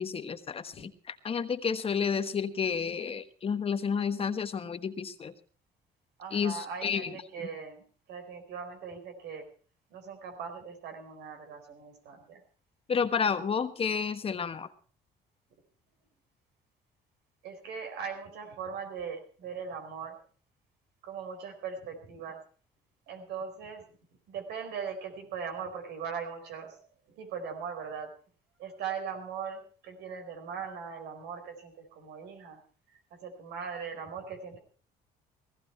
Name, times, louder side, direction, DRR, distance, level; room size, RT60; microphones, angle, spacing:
voice 1, 0.0-5.3 6.3-7.1 12.9-14.7, left 6 dB, 35° left, 10 dB, 1.2 m, -31 dB
voice 2, 6.2-9.5 9.9-12.4 17.4-20.2 21.0-22.4 23.1-23.9 24.3-26.8 27.2-28.1 28.6-32.6 33.1-34.6, right 6 dB, 80° right, 5 dB, 4.5 m, -40 dB
17.0 x 14.5 x 4.4 m, 0.41 s
cardioid pair, 110°, 17 cm